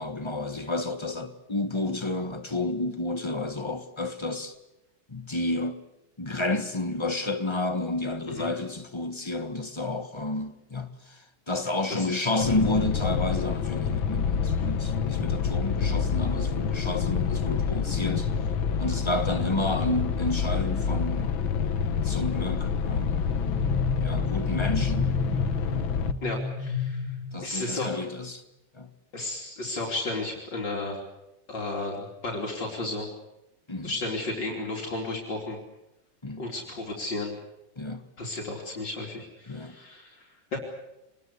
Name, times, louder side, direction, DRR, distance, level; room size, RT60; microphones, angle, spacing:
voice 1, 0.0-4.5 5.1-5.8 6.2-18.3 18.8-21.3 22.0-23.2 24.0-25.2 27.3-28.4 28.7-28.9 33.7-33.9 36.2-36.4 37.8-38.0 39.5-39.8, left 2 dB, 15° left, 1.2 m, -30 dB
voice 2, 11.9-12.3 26.2-27.2 27.4-27.9 29.1-31.0 31.5-33.1 33.8-35.6 36.4-37.3 38.2-40.6, left 2 dB, 65° left, 3.8 m, -33 dB
sound 1, 12.4-26.1, left 6 dB, 85° left, 1.9 m, -27 dB
sound 2, 22.8-27.8, left 3 dB, 65° right, 7.3 m, -33 dB
24.5 x 20.0 x 8.2 m
omnidirectional pair, 2.1 m